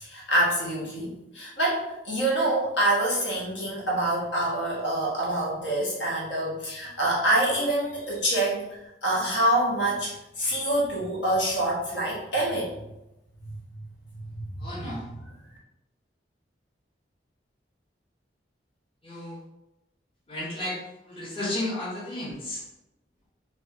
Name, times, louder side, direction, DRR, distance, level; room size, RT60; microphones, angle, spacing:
voice 1, 0.0-12.8 14.1-15.2, right 1 dB, 85° left, -4 dB, 1.1 m, -26 dB
voice 2, 14.6-15.1 19.0-19.4 20.3-20.8 21.0-22.6, left 1 dB, 30° left, -6 dB, 0.8 m, -33 dB
2.9 x 2.6 x 3.4 m, 0.91 s
head